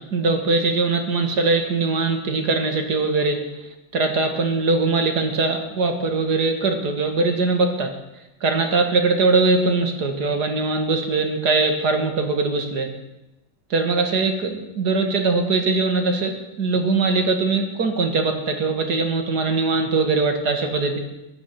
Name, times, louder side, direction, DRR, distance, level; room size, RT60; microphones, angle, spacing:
voice 1, 0.1-3.4 3.9-7.9 8.4-12.9 13.7-21.0, right 3 dB, 55° right, 5 dB, 2.4 m, -21 dB
16.0 x 10.0 x 7.8 m, 0.95 s
omnidirectional pair, 2.1 m